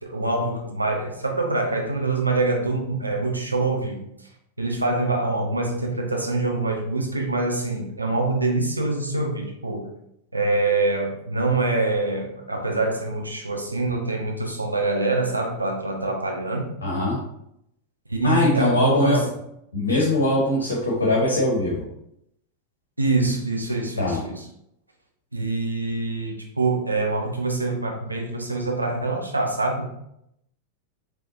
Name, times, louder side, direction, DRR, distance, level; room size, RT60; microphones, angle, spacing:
voice 1, 0.0-4.0 4.6-9.9 10.3-16.7 18.1-19.2 23.0-24.4 25.3-29.9, right 2 dB, 85° right, 1 dB, 0.7 m, -25 dB
voice 2, 16.8-17.2 18.2-19.2 19.7-21.8 24.0-24.2, left 2 dB, 70° left, -3 dB, 0.9 m, -21 dB
4.5 x 3.2 x 2.6 m, 0.78 s
figure-of-eight pair, 90°, 0 cm